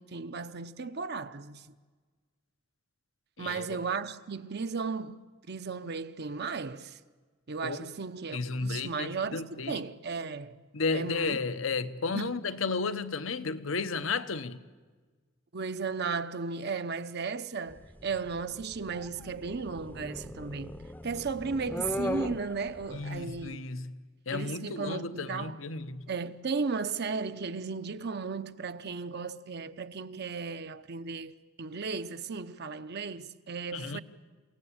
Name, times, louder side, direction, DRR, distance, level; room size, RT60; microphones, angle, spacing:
voice 1, 0.0-1.7 3.4-7.0 7.5-10.6 10.9-11.4 12.1-12.3 15.5-23.7 24.3-25.6 26.1-34.0, right 4 dB, 55° right, 0.8 m, -35 dB
voice 2, 3.4-3.8 7.6-7.9 8.3-9.8 10.7-14.6 22.9-26.1 33.7-34.0, left 4 dB, 75° left, 1.0 m, -33 dB
sound 1, 17.7-23.5, left 1 dB, 10° left, 0.7 m, -39 dB
28.5 x 17.5 x 8.7 m
head